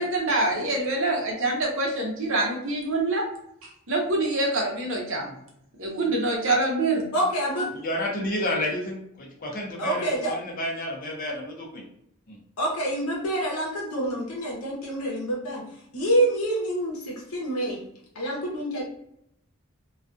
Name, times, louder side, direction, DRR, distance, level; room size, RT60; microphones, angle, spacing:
voice 1, 0.0-3.2 3.6-5.3 5.8-7.1, right 2 dB, 60° right, 0 dB, 0.7 m, -25 dB
voice 2, 7.1-7.7 9.8-10.3 12.6-15.6 15.9-17.8 18.1-18.8, right 1 dB, 85° left, -3 dB, 0.7 m, -27 dB
voice 3, 7.8-11.9 12.3-12.4, left 1 dB, 40° left, -1 dB, 0.6 m, -30 dB
2.3 x 2.3 x 2.5 m, 0.75 s
head